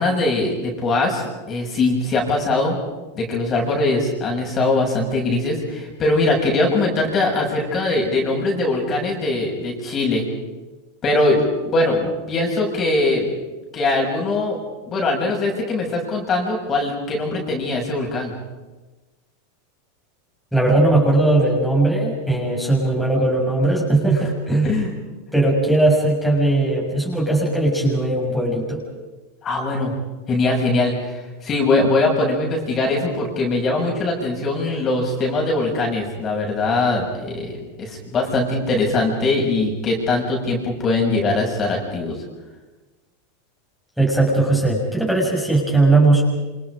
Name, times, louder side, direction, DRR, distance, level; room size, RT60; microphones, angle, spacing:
voice 1, 0.0-2.8 3.1-10.2 11.0-13.3 13.7-14.6 14.9-18.3 24.6-24.9 29.4-29.9 30.3-42.2, left 2 dB, 30° left, 0 dB, 7.4 m, -21 dB
voice 2, 20.5-24.7 25.3-28.8 44.0-46.2, right 2 dB, ahead, -3 dB, 7.2 m, -18 dB
28.5 x 27.5 x 5.1 m, 1.2 s
supercardioid pair, 135°, 0 cm